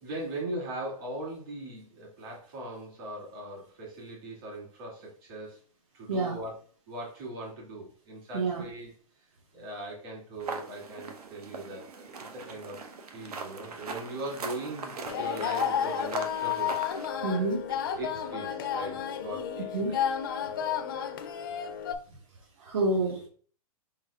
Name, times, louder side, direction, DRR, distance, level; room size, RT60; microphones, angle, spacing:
voice 1, 0.0-5.6 5.9-6.6 6.9-8.9 9.5-12.8 13.1-17.5 18.0-20.0 20.6-21.5, right 1 dB, 40° right, -3 dB, 2.1 m, -40 dB
voice 2, 8.3-8.6 17.2-17.6 19.7-19.9 22.6-23.3, right 2 dB, 60° right, -1 dB, 1.1 m, -28 dB
sound 1, 10.4-17.1, right 4 dB, 85° right, 0.9 m, -40 dB
sound 2, 15.1-21.9, left 8 dB, 35° left, 0.4 m, -32 dB
4.6 x 4.0 x 2.3 m, 0.43 s
hypercardioid pair, 170°, 19 cm